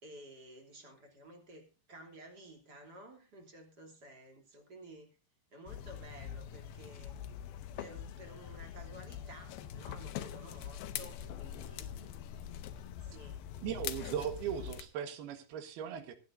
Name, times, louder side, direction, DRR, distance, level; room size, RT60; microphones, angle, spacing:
voice 1, 0.0-5.2 5.5-7.2 7.8-12.1 13.0-13.4, right 1 dB, 25° right, 3 dB, 2.9 m, -53 dB
sound 1, 5.7-14.8, left 10 dB, 75° left, 2.5 m, -43 dB
voice 2, 13.6-16.2, right 9 dB, 70° right, 9 dB, 3.3 m, -38 dB
24.0 x 9.4 x 2.6 m, 0.32 s
omnidirectional pair, 5.0 m